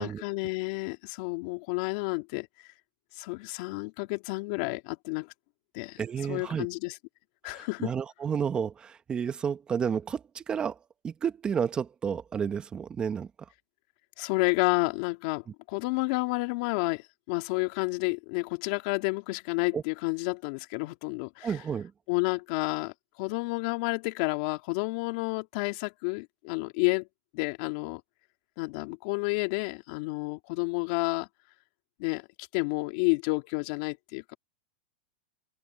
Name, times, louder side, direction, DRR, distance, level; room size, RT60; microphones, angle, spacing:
voice 1, 0.0-2.5 3.1-5.3 5.7-6.0 6.3-6.9 7.4-7.9 14.2-21.6 22.1-22.9 23.2-27.1 27.3-28.0 28.6-31.3 32.0-34.3, left 27 dB, 50° left, 3.1 m, -30 dB
voice 2, 6.0-6.7 7.4-10.8 11.0-13.3 19.7-19.8 21.4-21.9, right 7 dB, 20° right, 1.4 m, -31 dB
open air
supercardioid pair, 140°, 5 cm